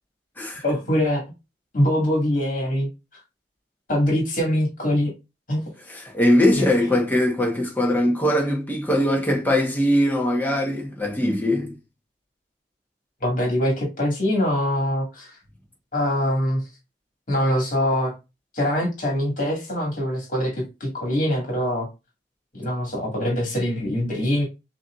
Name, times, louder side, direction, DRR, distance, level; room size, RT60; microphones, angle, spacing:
voice 1, 0.6-1.2 1.7-2.9 3.9-5.1 5.5-5.6 6.5-6.6 13.2-15.4 15.9-16.6 17.3-18.1 18.5-21.9 22.5-24.5, equal, 50° left, 1.9 m, -23 dB
voice 2, 5.9-11.8, left 1 dB, 10° left, 1.1 m, -21 dB
6.9 x 2.8 x 2.4 m
head